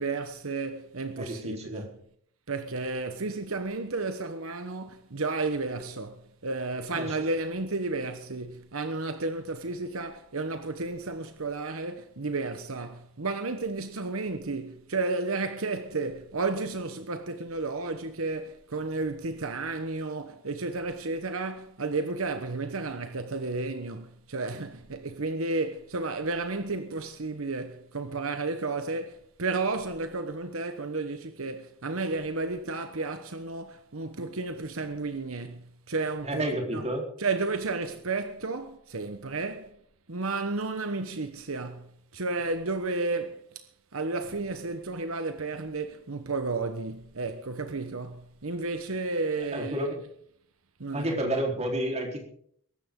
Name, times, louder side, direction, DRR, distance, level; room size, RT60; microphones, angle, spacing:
voice 1, 0.0-1.9 2.5-36.4 36.7-36.8 37.2-39.7 40.1-49.9 50.8-51.3, right 3 dB, 75° right, 1.1 m, -32 dB
voice 2, 1.2-1.9 6.9-7.2 36.2-37.1 49.5-50.0 50.9-52.2, right 1 dB, 30° right, 4.0 m, -30 dB
22.5 x 12.5 x 3.8 m
head